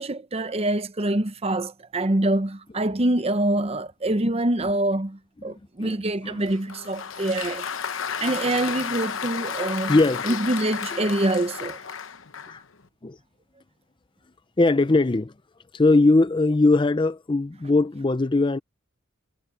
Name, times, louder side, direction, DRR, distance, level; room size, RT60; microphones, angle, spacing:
voice 1, 0.0-7.7 8.2-10.0 10.2-11.8, right 1 dB, 30° right, 0.8 m, -25 dB
Applause, 6.5-12.6, left 7 dB, 65° left, 1.0 m, -32 dB
voice 2, 9.9-10.4 10.9-11.1 12.5-12.6 13.0-13.2 14.6-15.3 15.7-18.6, left 2 dB, 25° left, 0.5 m, -20 dB
head